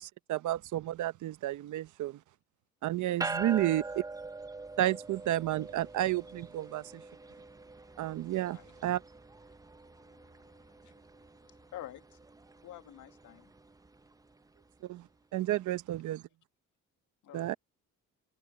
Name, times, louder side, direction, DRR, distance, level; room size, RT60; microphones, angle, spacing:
voice 1, 0.0-2.2 2.8-4.0 4.8-7.0 8.0-9.0 14.8-15.1 15.3-16.2 17.3-17.5, right 14 dB, 75° right, 0.9 m, -31 dB
sound 1, 3.2-14.8, right 3 dB, 10° right, 0.7 m, -44 dB
voice 2, 8.4-8.7 10.0-12.0 12.6-13.5 17.2-17.6, left 12 dB, 80° left, 2.1 m, -50 dB
cardioid pair, 90°, 30 cm